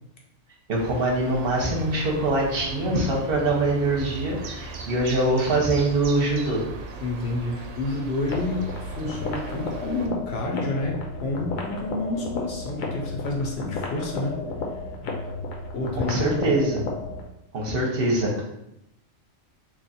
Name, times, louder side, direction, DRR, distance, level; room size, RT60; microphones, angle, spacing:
voice 1, 0.7-6.6 16.0-16.8 17.5-18.4, right 2 dB, 50° right, -2 dB, 0.9 m, -23 dB
sound 1, 0.7-10.1, right 3 dB, 90° right, 1.0 m, -38 dB
voice 2, 7.0-14.4 15.7-16.2, left 2 dB, 60° left, 0 dB, 0.8 m, -29 dB
sound 2, 8.2-17.3, left 3 dB, 80° left, 1.1 m, -33 dB
3.1 x 2.4 x 4.1 m, 0.82 s
omnidirectional pair, 1.4 m